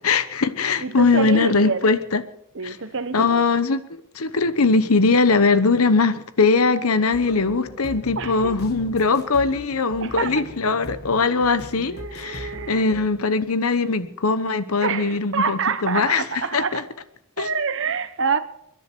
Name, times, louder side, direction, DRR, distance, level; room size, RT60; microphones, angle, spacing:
voice 1, 0.0-2.2 2.6-2.8 3.1-3.8 4.1-16.2 16.5-16.8 17.4-17.5, left 4 dB, 90° left, 1.0 m, -20 dB
voice 2, 0.8-1.8 2.5-3.5 8.1-8.6 10.0-10.5 11.9-13.0 14.8-16.8 17.4-18.4, right 5 dB, 60° right, 1.1 m, -27 dB
sound 1, 7.1-13.0, left 1 dB, 50° left, 1.5 m, -39 dB
29.5 x 10.5 x 4.6 m
head